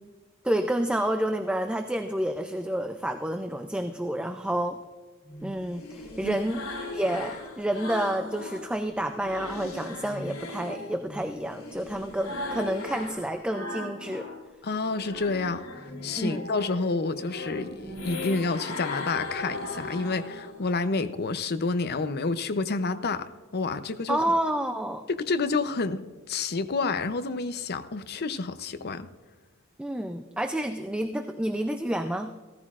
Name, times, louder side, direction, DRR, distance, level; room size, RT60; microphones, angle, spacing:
voice 1, 0.4-4.8 5.4-6.6 6.9-14.3 16.2-16.5 24.1-25.0 29.8-32.3, right 1 dB, 5° right, 7 dB, 0.4 m, -29 dB
sound 1, 5.2-8.7 9.0-14.4 14.8-20.7, left 2 dB, 75° left, 2.9 m, -38 dB
voice 2, 14.6-15.6 16.0-24.2 25.1-29.1, left 3 dB, 50° left, 10 dB, 0.6 m, -29 dB
16.0 x 14.0 x 2.5 m, 1.3 s
head